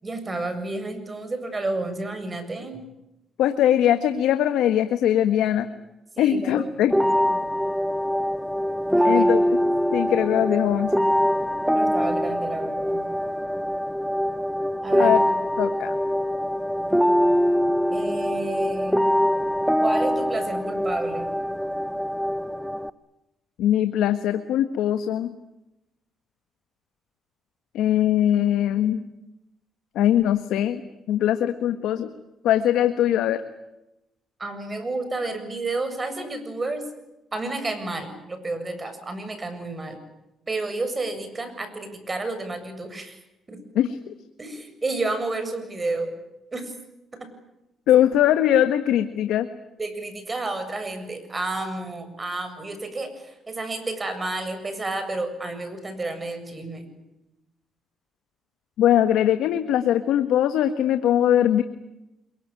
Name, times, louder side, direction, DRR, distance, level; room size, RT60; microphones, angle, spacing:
voice 1, 0.0-2.8 6.2-7.0 7.2-7.4 8.9-9.3 11.7-13.0 14.8-15.2 17.9-19.0 19.8-21.3 34.4-36.8 37.3-40.0 40.5-43.2 43.5-43.6 44.4-46.1 46.5-46.7 47.2-47.3 49.8-56.9, right 2 dB, 25° right, 9 dB, 7.4 m, -30 dB
voice 2, 3.4-5.7 6.2-6.9 9.0-9.4 9.9-10.9 15.0-15.2 15.6-15.9 23.6-25.3 27.7-29.0 29.9-30.8 31.1-32.1 32.4-33.4 43.7-44.1 47.9-49.5 58.8-61.6, left 11 dB, 85° left, 9 dB, 1.4 m, -21 dB
sound 1, 6.9-22.9, equal, ahead, 1.0 m, -23 dB
27.5 x 23.0 x 9.0 m, 0.93 s
cardioid pair, 90°, 0 cm